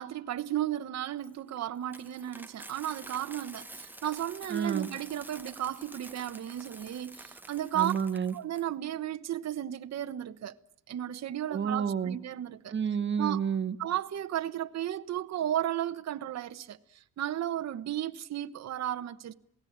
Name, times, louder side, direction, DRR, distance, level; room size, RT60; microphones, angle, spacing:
voice 1, 0.0-7.9 8.3-10.6 10.9-12.7 13.2-13.4 13.8-19.3, right 11 dB, 60° right, 1.1 m, -34 dB
Coin (dropping), 1.2-8.6, right 2 dB, 5° right, 1.4 m, -48 dB
voice 2, 4.5-4.9 7.7-8.3 11.5-12.2 12.7-13.8, right 7 dB, 40° right, 1.5 m, -30 dB
27.5 x 18.0 x 8.7 m
cardioid pair, 90°, 30 cm